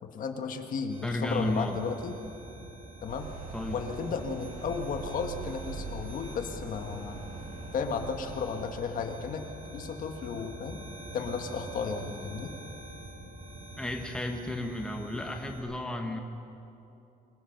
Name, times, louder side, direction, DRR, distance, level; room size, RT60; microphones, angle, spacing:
voice 1, 0.0-2.1 3.0-3.3 3.7-7.2 7.7-9.4 9.7-10.8 11.1-12.5, left 5 dB, 55° left, 5 dB, 1.6 m, -34 dB
sound 1, 0.9-15.6, right 1 dB, 35° right, 6.0 m, -45 dB
voice 2, 1.0-1.8 3.5-3.8 13.8-16.2, left 1 dB, 5° left, 2 dB, 1.4 m, -33 dB
sound 2, 3.1-8.7, right 4 dB, 55° right, 6.8 m, -43 dB
25.5 x 20.5 x 6.0 m, 2.8 s
cardioid pair, 160°, 17 cm